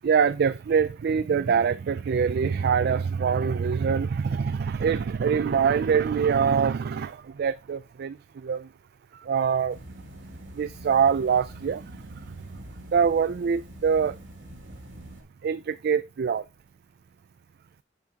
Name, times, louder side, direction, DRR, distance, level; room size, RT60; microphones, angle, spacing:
voice 1, 0.0-8.2 8.4-8.7 9.1-9.8 10.5-11.8 12.9-14.2 15.4-16.4, right 6 dB, 60° right, 0.3 m, -24 dB
sound 1, 9.7-15.2, right 1 dB, 90° right, 2.4 m, -45 dB
11.0 x 5.9 x 2.8 m
head